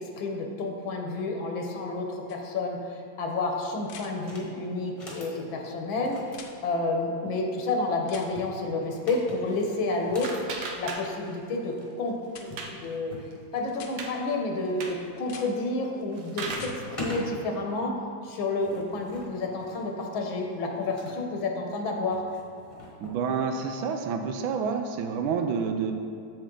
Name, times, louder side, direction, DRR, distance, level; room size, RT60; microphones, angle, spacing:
voice 1, 0.0-6.2 6.6-10.4 10.8-13.1 13.5-18.0 18.2-22.2, left 2 dB, 85° left, 2 dB, 1.7 m, -30 dB
sound 1, 2.3-2.4 3.8-4.1 6.3-6.5 8.1-8.3 10.1-10.4 12.3-12.5 13.7-13.9 15.2-15.5 16.4-16.8 18.8-18.9, left 6 dB, 70° left, 1.2 m, -45 dB
sound 2, 4.2-4.5 4.9-5.4 6.0-7.3 8.1-10.4 11.5-11.6 11.8-11.9 12.5-13.3 13.9-14.4 14.9-15.3 15.6-16.0 16.3-17.3 18.2-21.2 22.1-23.2, left 1 dB, 20° left, 1.1 m, -43 dB
sound 3, 9.5-11.5 11.8-12.9 13.3-13.4 13.7-14.1 14.7-15.1 15.8-16.8, right 3 dB, 60° right, 1.3 m, -38 dB
voice 2, 23.0-25.9, right 6 dB, 85° right, 6 dB, 1.4 m, -28 dB
7.5 x 6.9 x 3.8 m, 2.5 s
omnidirectional pair, 2.1 m